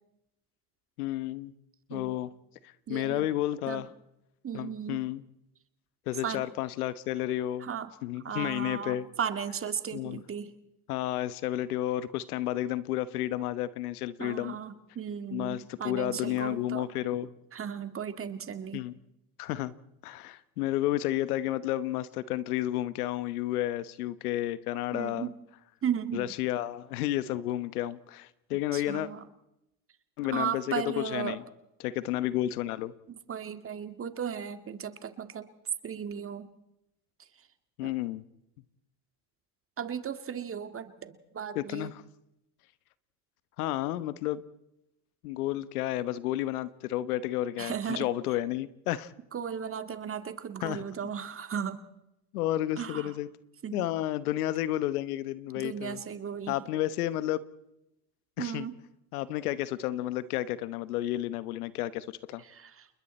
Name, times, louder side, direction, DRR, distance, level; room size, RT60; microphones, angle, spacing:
voice 1, 1.0-1.5 1.9-2.3 2.6-3.9 4.5-5.2 6.1-7.7 8.0-9.1 9.9-10.2 10.9-14.6 15.3-17.3 18.7-18.9 19.4-19.7 20.0-25.3 26.1-29.1 30.2-31.4 31.8-32.9 37.8-38.2 41.5-42.0 43.6-44.4 45.2-49.1 50.6-50.8 52.3-53.3 53.7-56.0 56.5-57.4 58.4-58.7 59.1-62.4, left 14 dB, 85° left, 1.2 m, -31 dB
voice 2, 2.9-3.3 3.7-3.8 4.4-5.0 6.2-6.5 7.6-7.9 8.2-10.5 14.2-16.9 17.5-18.8 24.9-25.3 25.8-26.3 28.7-29.2 30.3-31.4 33.1-35.5 35.8-36.5 37.8-37.9 39.8-41.9 47.6-48.1 49.3-51.8 52.8-53.1 53.6-53.9 55.6-56.6 58.4-58.8 62.5-62.9, right 8 dB, 30° right, 2.0 m, -36 dB
29.0 x 21.0 x 4.3 m
supercardioid pair, 95°, 44 cm